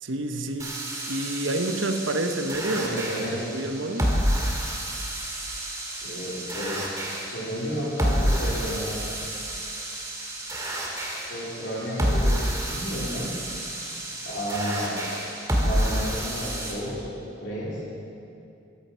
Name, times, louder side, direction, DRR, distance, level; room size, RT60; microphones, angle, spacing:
voice 1, 0.0-0.8 1.1-4.1, right 1 dB, 80° right, 7 dB, 1.0 m, -29 dB
sound 1, 0.6-16.7, equal, 15° right, 2.0 m, -29 dB
voice 2, 2.7-3.6 6.0-6.9 7.3-9.0 11.3-13.3 14.3-15.1 15.6-17.1 17.4-17.8, equal, 70° left, -7 dB, 3.6 m, -32 dB
14.5 x 13.0 x 5.7 m, 2.6 s
head